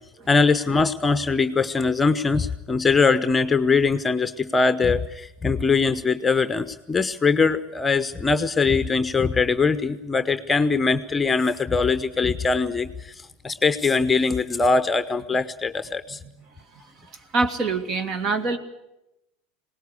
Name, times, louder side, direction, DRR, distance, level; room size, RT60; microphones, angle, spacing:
voice 1, 0.3-16.2, left 4 dB, 20° left, 12 dB, 0.9 m, -22 dB
voice 2, 16.7-18.6, right 3 dB, 40° right, 9 dB, 2.4 m, -26 dB
21.5 x 19.0 x 8.4 m, 0.89 s
hypercardioid pair, 90°, 0 cm